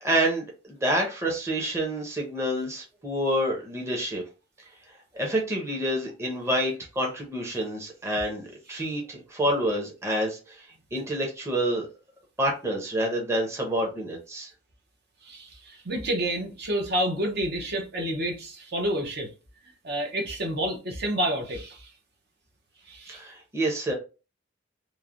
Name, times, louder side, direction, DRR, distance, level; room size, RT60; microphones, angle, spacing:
voice 1, 0.0-4.2 5.1-10.7 10.9-11.9 12.4-14.5 23.1-23.9, right 1 dB, 15° right, 0.7 m, -28 dB
voice 2, 15.2-19.3 19.8-21.9 22.9-23.2, right 1 dB, 55° right, 0.7 m, -29 dB
3.1 x 2.1 x 2.5 m
head